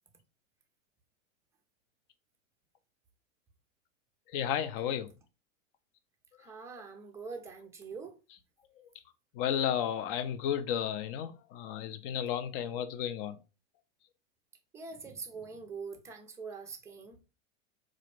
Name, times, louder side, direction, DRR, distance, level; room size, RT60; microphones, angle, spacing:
voice 1, 4.3-5.1 9.3-13.4, left 9 dB, 45° left, 0.6 m, -33 dB
voice 2, 6.4-8.2 14.7-17.2, right 4 dB, 10° right, 0.4 m, -44 dB
4.0 x 2.6 x 3.1 m
supercardioid pair, 130°, 39 cm